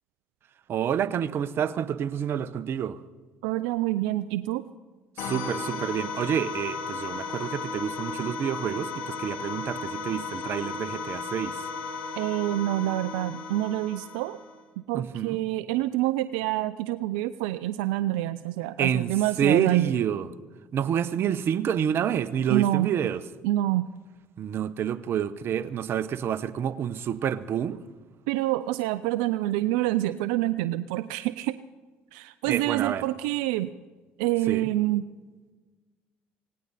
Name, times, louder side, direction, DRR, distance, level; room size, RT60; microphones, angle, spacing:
voice 1, 0.7-3.0 5.2-11.7 14.9-15.4 18.8-19.1 19.4-20.3 20.7-23.2 24.4-27.8 32.5-33.1 34.5-34.7, right 9 dB, 55° right, 13 dB, 0.9 m, -28 dB
voice 2, 3.4-4.6 12.2-14.4 14.9-19.9 22.5-22.9 23.4-23.9 28.3-31.5 32.1-33.7 34.2-35.0, right 15 dB, 85° right, 13 dB, 0.4 m, -27 dB
sound 1, 5.2-14.6, left 4 dB, 80° left, 3.6 m, -35 dB
18.0 x 17.5 x 4.1 m, 1.3 s
supercardioid pair, 75°, 5 cm